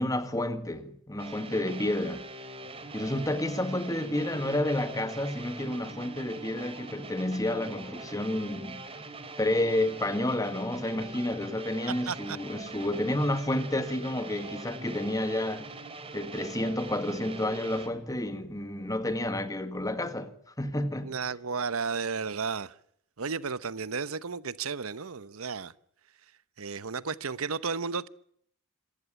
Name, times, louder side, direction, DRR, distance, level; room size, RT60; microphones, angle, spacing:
voice 1, 0.0-2.2 2.9-8.8 9.4-15.7 16.1-21.1, left 1 dB, 15° left, 1.8 m, -30 dB
sound 1, 1.2-17.9, right 3 dB, 25° right, 3.0 m, -43 dB
voice 2, 12.1-12.4 21.0-22.7 23.2-25.7 26.6-28.1, right 5 dB, 85° right, 0.9 m, -33 dB
27.0 x 15.0 x 10.0 m
head